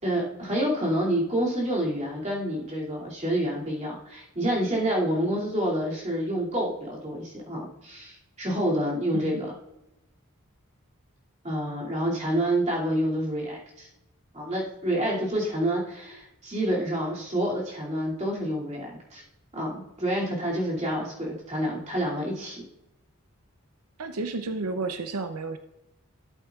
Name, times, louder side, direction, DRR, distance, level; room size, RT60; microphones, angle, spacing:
voice 1, 0.0-9.5 11.4-13.9 14.3-19.2 19.5-22.7, right 1 dB, 30° right, -4 dB, 2.5 m, -28 dB
voice 2, 24.0-25.6, right 3 dB, 85° right, 8 dB, 0.6 m, -31 dB
13.5 x 8.0 x 2.4 m, 0.92 s
head